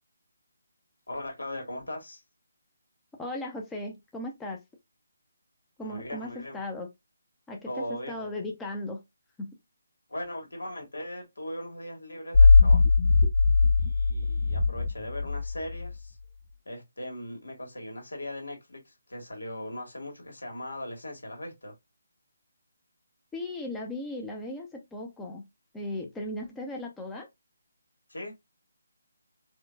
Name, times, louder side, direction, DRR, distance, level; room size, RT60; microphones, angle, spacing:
voice 1, 1.1-2.2 5.8-6.6 7.7-8.3 10.1-13.0 13.8-16.2 16.6-21.7 28.1-28.3, left 1 dB, 80° left, 1.6 m, -39 dB
voice 2, 3.2-4.6 5.8-6.9 7.5-9.0 9.4-9.5 23.3-25.5 25.7-27.3, left 1 dB, 10° left, 0.7 m, -37 dB
sound 1, 12.3-15.9, left 4 dB, 45° left, 1.8 m, -20 dB
4.3 x 2.3 x 2.3 m
figure-of-eight pair, 150°, 0 cm